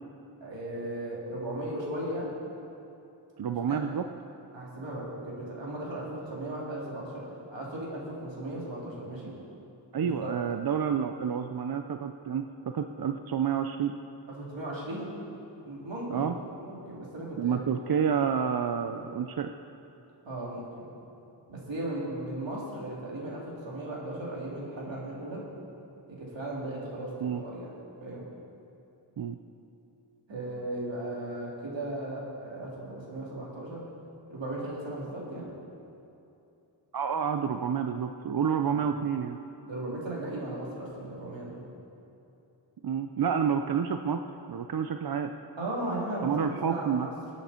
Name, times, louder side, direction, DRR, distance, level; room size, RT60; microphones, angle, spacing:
voice 1, 0.4-2.4 3.7-3.8 4.5-7.2 7.5-9.3 10.0-10.3 14.3-15.1 15.6-17.6 18.9-19.1 20.2-20.9 21.5-25.4 26.2-27.7 28.0-28.3 30.3-33.8 34.3-35.5 38.7-38.9 39.6-41.6 45.6-47.1, right 1 dB, 85° right, -5 dB, 3.4 m, -36 dB
voice 2, 3.4-4.1 9.9-13.9 16.1-16.4 17.4-19.5 27.2-27.4 29.2-29.4 36.9-39.4 42.8-44.2 44.5-45.3 46.2-47.1, right 7 dB, 55° right, 7 dB, 0.6 m, -29 dB
22.5 x 8.6 x 4.4 m, 2.8 s
wide cardioid pair, 100°, 44 cm